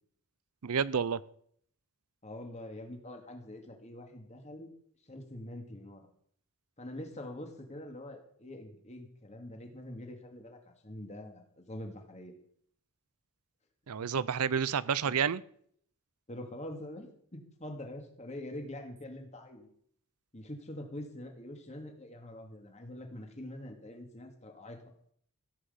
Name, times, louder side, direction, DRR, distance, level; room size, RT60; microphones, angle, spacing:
voice 1, 0.6-1.2 13.9-15.4, right 7 dB, 85° right, 18 dB, 0.6 m, -29 dB
voice 2, 2.2-4.7 5.0-6.1 6.8-12.3 14.0-14.2 15.0-15.1 16.3-19.7 20.3-24.8, left 1 dB, 30° left, 4 dB, 2.3 m, -45 dB
16.0 x 6.5 x 8.0 m, 0.64 s
head